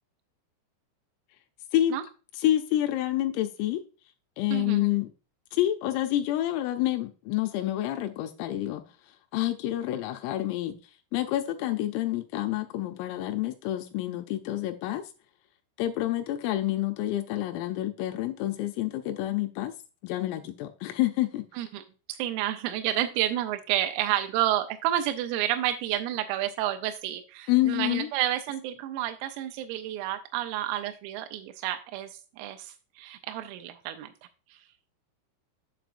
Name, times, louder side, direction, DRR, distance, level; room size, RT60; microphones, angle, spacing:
voice 1, 2.4-3.8 4.4-5.1 5.5-8.8 9.3-10.7 11.1-15.0 15.8-19.7 20.0-21.4 27.5-28.1, left 14 dB, 85° left, 3.3 m, -28 dB
voice 2, 4.5-4.8 21.5-21.8 22.1-34.1 34.5-34.6, right 13 dB, 85° right, 3.3 m, -30 dB
7.8 x 7.6 x 2.5 m
omnidirectional pair, 6.0 m